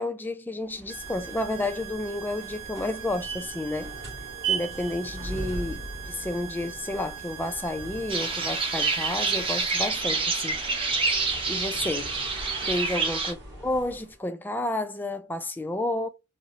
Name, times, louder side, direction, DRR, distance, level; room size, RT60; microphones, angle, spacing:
voice 1, 0.0-3.9 4.5-10.6 11.5-12.1 12.7-16.1, left 1 dB, 10° left, 0.3 m, -31 dB
sound 1, 0.7-14.2, right 4 dB, 55° right, 2.1 m, -39 dB
sound 2, 0.9-9.9, right 10 dB, 75° right, 0.4 m, -42 dB
sound 3, 8.1-13.3, right 4 dB, 25° right, 0.6 m, -27 dB
3.8 x 2.1 x 2.7 m
head